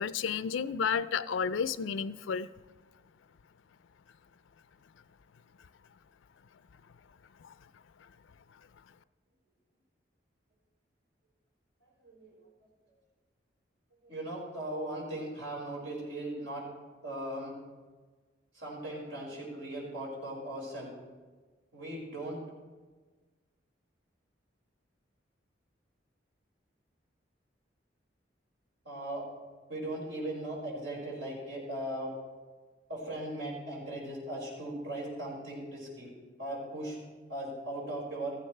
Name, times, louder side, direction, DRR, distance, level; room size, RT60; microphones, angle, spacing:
voice 1, 0.0-2.5 7.4-7.5, left 6 dB, 90° left, 15 dB, 0.4 m, -31 dB
voice 2, 11.8-12.3 14.0-16.7 17.0-17.5 18.5-20.9 21.7-22.4 28.8-29.2 29.7-32.1 32.9-36.1 36.4-37.0 37.3-38.3, right 1 dB, 90° right, -4 dB, 5.4 m, -38 dB
16.0 x 14.5 x 3.3 m, 1.3 s
head